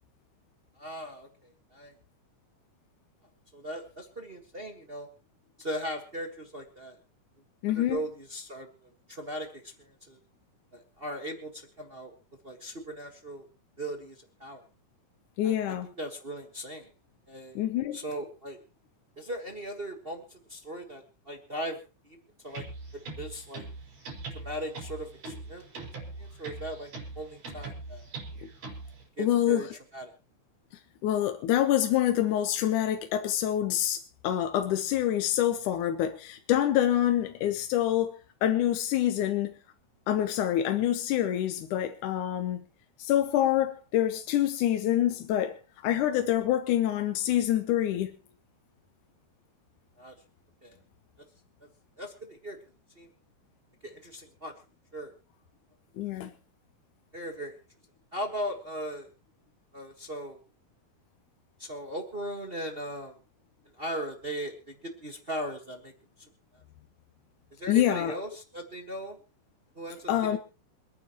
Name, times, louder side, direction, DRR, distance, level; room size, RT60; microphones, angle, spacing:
voice 1, 0.8-1.9 3.5-5.1 5.6-7.0 7.7-10.2 10.7-12.1 12.4-13.5 13.8-14.6 15.4-16.9 17.3-17.6 17.9-18.6 19.2-21.8 22.0-22.2 22.4-22.6 23.2-23.7 24.3-25.7 26.2-26.9 27.1-28.0 29.2-29.7 29.9-30.1 50.0-50.1 50.6-50.8 52.0-52.6 53.0-53.1 53.8-54.5 54.9-55.1 57.1-57.6 58.1-59.1 59.7-60.4 61.6-63.2 63.8-65.9 66.5-66.6 67.5-69.2 69.7-70.4, equal, 40° right, 0.8 m, -38 dB
voice 2, 7.6-8.0 15.4-15.9 17.6-18.0 29.2-29.6 31.0-38.1 38.4-39.5 40.1-42.6 43.0-45.5 45.8-48.1 56.0-56.3 67.7-68.1 70.1-70.4, left 12 dB, 75° left, 2.3 m, -26 dB
sound 1, 22.5-29.0, right 3 dB, 80° right, 6.8 m, -42 dB
27.5 x 9.7 x 3.0 m
omnidirectional pair, 3.8 m